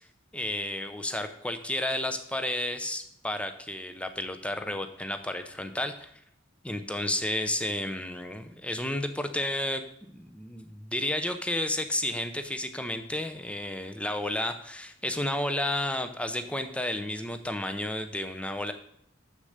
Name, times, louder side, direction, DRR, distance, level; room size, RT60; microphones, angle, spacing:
voice 1, 0.3-6.1 6.6-18.7, left 1 dB, 5° left, 8 dB, 0.6 m, -32 dB
6.7 x 6.6 x 6.5 m, 0.72 s
head